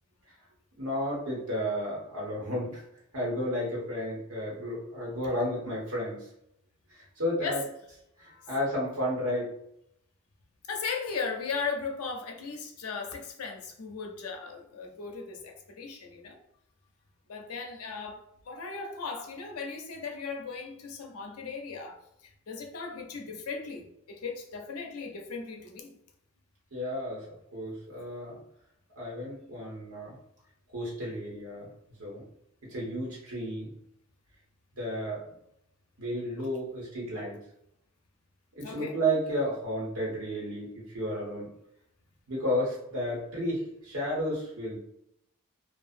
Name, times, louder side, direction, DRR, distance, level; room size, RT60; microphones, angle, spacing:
voice 1, 0.8-2.8 3.1-6.3 6.9-7.6 8.2-9.5 26.7-27.3 27.5-28.4 28.9-30.2 30.7-31.7 32.0-32.2 32.7-33.7 34.8-35.2 36.0-37.4 38.6-41.5 42.3-44.8, equal, 75° right, -5 dB, 1.2 m, -32 dB
voice 2, 10.7-16.4 17.3-22.0 22.2-26.0 38.6-38.9, left 5 dB, 85° left, 2 dB, 0.5 m, -37 dB
2.7 x 2.3 x 2.4 m, 0.78 s
head